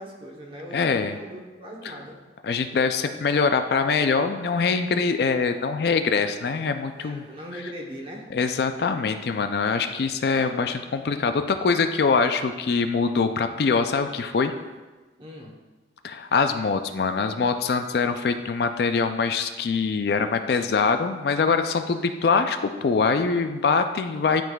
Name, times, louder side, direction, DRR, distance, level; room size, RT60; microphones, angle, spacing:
voice 1, 0.0-2.2 6.9-8.3 15.2-15.5, equal, 30° right, -1 dB, 0.9 m, -39 dB
voice 2, 0.7-1.2 1.8-1.9 2.4-7.3 8.3-14.5 16.0-24.4, left 4 dB, 60° left, 8 dB, 0.4 m, -23 dB
11.5 x 3.9 x 2.3 m, 1.2 s
head